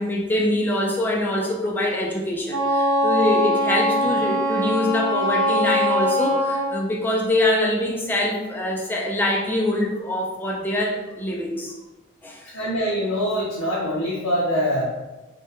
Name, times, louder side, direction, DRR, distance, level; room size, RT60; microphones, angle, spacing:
voice 1, 0.0-11.7 12.2-12.6, left 1 dB, 10° left, -1 dB, 0.3 m, -24 dB
Wind instrument woodwind instrument, 2.5-6.8, equal, 70° right, 0.5 m, -22 dB
voice 2, 12.5-14.8, equal, 85° left, -7 dB, 0.6 m, -24 dB
2.8 x 2.2 x 2.3 m, 1.1 s
head